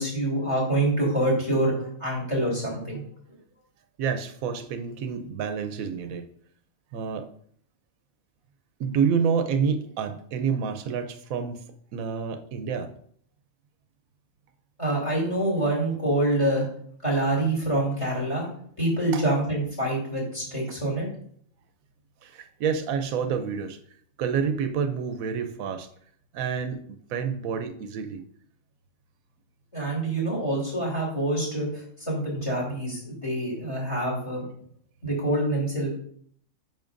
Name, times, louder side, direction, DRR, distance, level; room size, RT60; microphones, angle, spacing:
voice 1, 0.0-3.0 14.8-16.6 17.0-18.5 18.8-21.1 29.7-34.4 35.0-35.9, right 1 dB, 20° left, -2 dB, 2.8 m, -26 dB
voice 2, 4.0-6.3 6.9-7.3 8.8-11.6 11.9-12.9 19.1-19.2 22.2-23.8 24.2-25.9 26.3-28.2, right 6 dB, 80° right, 8 dB, 1.1 m, -28 dB
8.8 x 5.9 x 2.5 m, 0.63 s
omnidirectional pair, 1.4 m